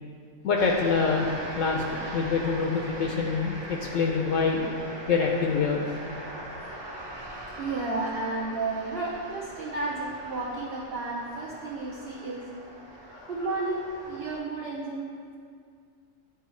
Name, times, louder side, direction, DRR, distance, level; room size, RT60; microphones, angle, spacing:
voice 1, 0.4-4.7 5.1-6.0 13.1-13.3, left 5 dB, 70° left, 1 dB, 0.9 m, -26 dB
sound 1, 0.5-14.4, right 1 dB, 35° right, 0.4 m, -41 dB
voice 2, 7.6-12.5 13.1-15.1, right 3 dB, 55° right, -4 dB, 0.9 m, -32 dB
8.9 x 4.3 x 3.1 m, 2.2 s
omnidirectional pair, 1.4 m